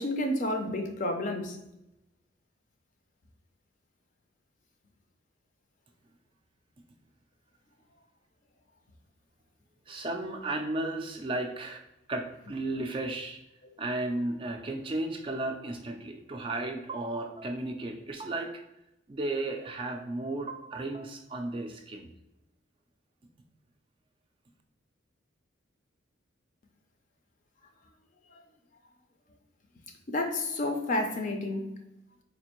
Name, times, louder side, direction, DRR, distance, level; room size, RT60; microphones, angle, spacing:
voice 1, 0.0-1.6 30.1-31.7, left 1 dB, 40° left, 0.5 m, -30 dB
voice 2, 9.9-11.8 12.1-13.4 13.8-18.6 19.1-22.1, right 2 dB, 25° right, 0.3 m, -34 dB
4.2 x 2.5 x 2.9 m
head